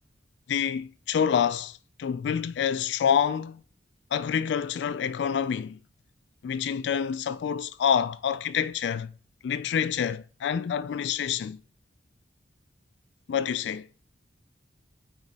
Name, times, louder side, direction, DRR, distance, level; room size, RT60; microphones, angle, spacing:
voice 1, 0.5-3.6 4.1-5.8 6.4-9.1 9.4-11.6 13.3-13.9, left 8 dB, 70° left, 0.3 m, -27 dB
8.8 x 3.1 x 4.1 m
head